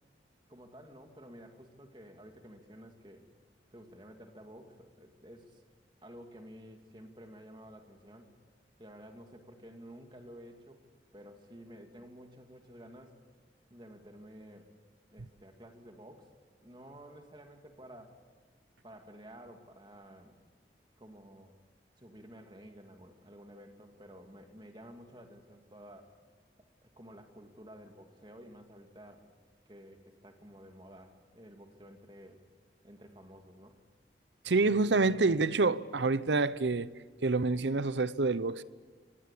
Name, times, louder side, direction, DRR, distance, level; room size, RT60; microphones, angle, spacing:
voice 1, 0.5-3.3 3.7-5.6 6.0-8.3 8.8-10.8 11.1-13.2 13.7-14.7 15.1-16.3 16.6-18.2 18.8-20.4 21.0-21.5 22.0-26.1 26.8-29.3 29.7-32.4 32.8-33.8, equal, 25° right, 2.4 m, -52 dB
voice 2, 34.4-36.9 37.2-38.6, right 3 dB, 85° right, 0.8 m, -27 dB
26.0 x 18.0 x 8.5 m
head